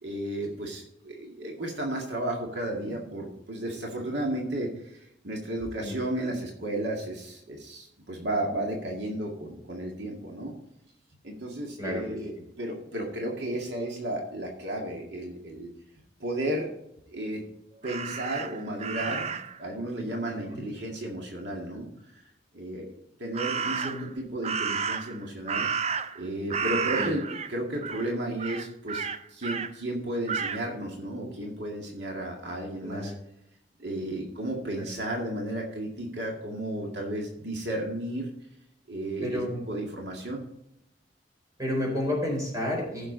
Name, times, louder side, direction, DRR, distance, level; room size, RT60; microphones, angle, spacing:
voice 1, 0.0-10.5 11.2-15.7 16.2-16.7 17.1-17.4 17.8-21.9 22.1-22.2 22.5-22.9 23.2-25.7 26.1-33.1 33.8-38.3 38.9-40.4, right 1 dB, 75° right, 0 dB, 2.1 m, -33 dB
Crow, 17.8-19.6 23.3-24.1 24.4-26.2 26.5-27.5 27.8-28.1 28.4-29.7 30.3-30.6, right 6 dB, 35° right, 0.6 m, -31 dB
voice 2, 20.3-20.6 23.7-24.1 26.9-27.1 32.8-33.1 34.8-34.9 39.2-39.6 41.6-43.1, left 1 dB, 20° right, -1 dB, 4.2 m, -31 dB
14.5 x 6.5 x 3.9 m, 0.79 s
head